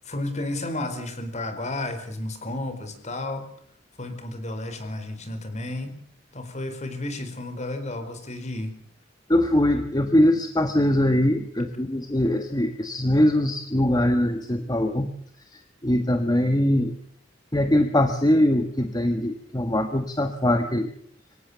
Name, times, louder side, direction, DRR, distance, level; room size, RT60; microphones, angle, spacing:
voice 1, 0.0-3.5 4.0-6.0 6.3-8.8, left 2 dB, 40° left, 8 dB, 4.6 m, -32 dB
voice 2, 9.3-15.1 15.5-17.0 17.5-20.9, left 1 dB, 20° left, 7 dB, 1.5 m, -22 dB
25.0 x 17.5 x 6.9 m, 0.63 s
head